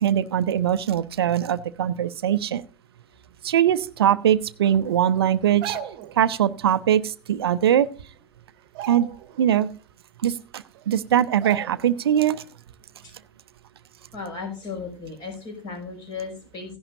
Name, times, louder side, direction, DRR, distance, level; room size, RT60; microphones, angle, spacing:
voice 1, 0.0-2.6 3.4-5.8 6.2-7.9 8.9-9.1 9.4-9.7 10.2-12.4, right 10 dB, 65° right, 14 dB, 0.7 m, -21 dB
sound 1, 5.4-6.2 7.6-7.7 8.0-8.3 8.7-9.5 9.9-10.0 10.8-10.9 11.4-12.0 12.4-12.6, right 8 dB, 45° right, 1.2 m, -36 dB
voice 2, 14.1-16.8, left 4 dB, 35° left, 3 dB, 6.1 m, -35 dB
16.0 x 11.0 x 2.7 m, 0.36 s
figure-of-eight pair, 100°, 14 cm